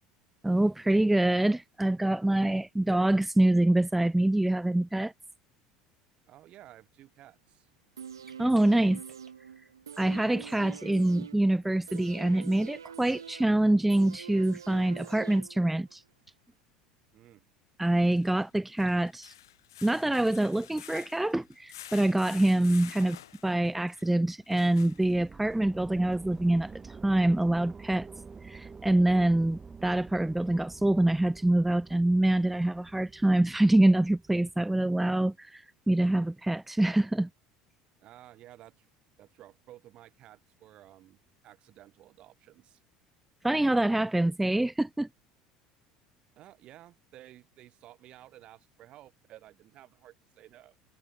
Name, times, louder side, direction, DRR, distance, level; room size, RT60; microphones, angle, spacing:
voice 1, 0.4-5.1 8.4-9.0 9.6-9.7 10.0-16.0 17.8-19.4 19.8-28.1 28.4-37.3 43.4-45.1, right 1 dB, 5° right, 0.7 m, -25 dB
voice 2, 6.3-7.7 17.1-17.4 38.0-38.9 39.2-42.8 46.4-50.8, right 14 dB, 50° right, 5.8 m, -54 dB
sound 1, 8.0-15.9 16.3-16.4, right 7 dB, 90° right, 1.2 m, -46 dB
sound 2, 15.4-15.5 17.9-25.5 26.1-26.2 26.7-26.8, left 13 dB, 80° left, 0.6 m, -50 dB
sound 3, 24.8-34.7, right 5 dB, 25° right, 2.8 m, -48 dB
hypercardioid pair, 70°, 2 cm